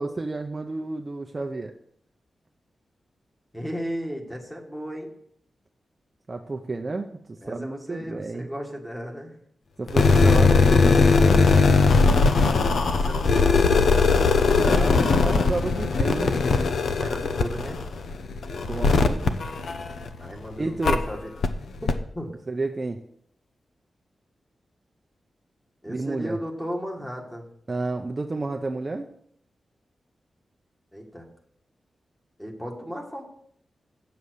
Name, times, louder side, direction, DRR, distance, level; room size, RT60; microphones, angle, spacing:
voice 1, 0.0-1.7 6.3-8.5 9.8-11.4 14.4-16.4 18.7-19.4 20.6-21.0 22.5-23.0 25.9-26.4 27.7-29.1, right 3 dB, 30° right, 4 dB, 0.7 m, -30 dB
voice 2, 3.5-5.1 7.4-9.3 12.8-14.3 16.9-17.8 20.2-21.3 21.8-22.4 25.8-27.5 30.9-31.3 32.4-33.2, equal, 10° left, 1 dB, 1.9 m, -35 dB
sound 1, 9.9-20.3 20.8-21.0 21.4-21.5 21.9-22.0, left 4 dB, 75° left, 0.7 m, -19 dB
8.0 x 7.2 x 6.4 m, 0.68 s
wide cardioid pair, 130°, 0 cm